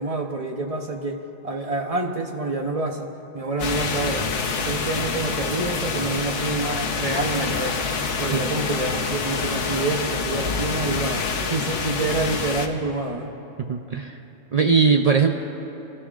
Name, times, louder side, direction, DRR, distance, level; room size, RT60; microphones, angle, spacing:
voice 1, 0.0-3.1 3.3-4.3 4.6-7.9 8.2-11.2 11.5-13.3, right 2 dB, 35° right, 3 dB, 0.8 m, -27 dB
sound 1, 3.6-12.7, left 4 dB, 70° left, 1.2 m, -27 dB
voice 2, 13.6-14.2 14.5-15.3, right 5 dB, 65° right, 4 dB, 0.4 m, -19 dB
29.0 x 13.5 x 2.5 m, 2.9 s
omnidirectional pair, 1.3 m